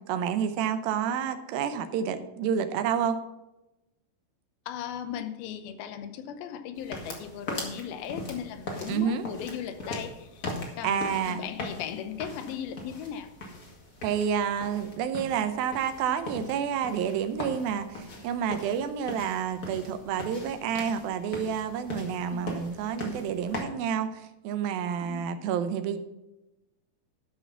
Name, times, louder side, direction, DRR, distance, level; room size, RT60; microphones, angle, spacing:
voice 1, 0.1-3.2 8.9-9.2 10.8-11.4 14.0-26.0, right 8 dB, 85° right, 9 dB, 2.6 m, -29 dB
voice 2, 4.7-10.4 10.8-13.3 22.3-22.6 25.0-25.3, left 9 dB, 85° left, 10 dB, 2.7 m, -37 dB
sound 1, 6.8-23.6, left 1 dB, 40° left, 1.2 m, -40 dB
12.5 x 5.9 x 5.8 m, 0.97 s
omnidirectional pair, 4.2 m